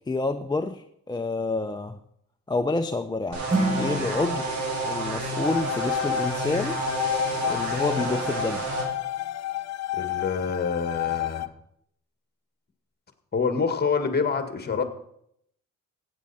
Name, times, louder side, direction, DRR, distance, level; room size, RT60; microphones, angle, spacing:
voice 1, 0.1-2.0 2.5-4.5 4.8-6.8 7.4-8.6, left 3 dB, 15° left, 5 dB, 0.6 m, -28 dB
sound 1, 3.3-8.8, right 2 dB, 65° right, 4.0 m, -30 dB
Acoustic guitar / Strum, 3.5-6.8, right 2 dB, 25° right, 2.1 m, -31 dB
sound 2, 5.4-11.5, left 15 dB, 60° left, 0.6 m, -31 dB
voice 2, 10.0-11.5 13.3-14.8, left 5 dB, 35° left, 8 dB, 1.7 m, -26 dB
14.5 x 8.6 x 4.2 m, 0.71 s
cardioid pair, 90°, 30 cm